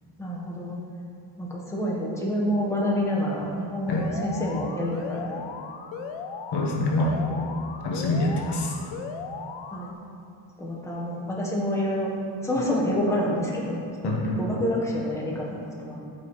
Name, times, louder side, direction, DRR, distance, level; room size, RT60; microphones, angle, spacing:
voice 1, 0.2-0.8 1.4-5.4 7.1-7.4 8.1-8.2 9.7-9.9 10.6-12.1 12.4-13.8 14.0-16.0, left 1 dB, 5° left, -4 dB, 1.3 m, -28 dB
Alarm, 3.9-9.9, left 6 dB, 75° left, 0.8 m, -37 dB
voice 2, 6.5-7.2 7.8-8.7 14.0-14.4, left 2 dB, 55° left, -1 dB, 1.5 m, -25 dB
14.0 x 6.1 x 3.3 m, 2.5 s
cardioid pair, 140°, 47 cm